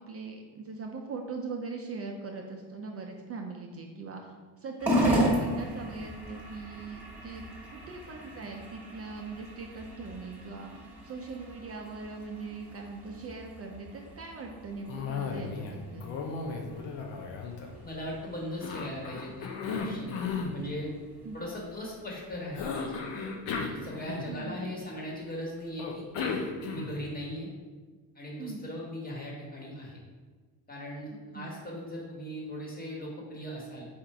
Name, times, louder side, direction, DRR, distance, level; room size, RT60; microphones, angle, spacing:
voice 1, 0.1-16.1 21.2-21.4 24.3-24.7 28.4-28.7 31.3-31.5, right 4 dB, 35° right, 2 dB, 0.4 m, -41 dB
sound 1, 4.8-23.4, equal, 5° right, 1.3 m, -36 dB
Cough, 14.9-15.7 16.0-18.1 18.6-20.6 22.5-24.6 25.8-27.1, left 5 dB, 90° left, 0.7 m, -35 dB
voice 2, 17.8-20.2 20.5-20.9 21.3-23.0 23.7-26.3 26.7-27.5 28.1-30.0 30.7-33.9, equal, 20° left, -3 dB, 1.3 m, -39 dB
4.3 x 2.4 x 4.7 m, 1.4 s
cardioid pair, 110°, 44 cm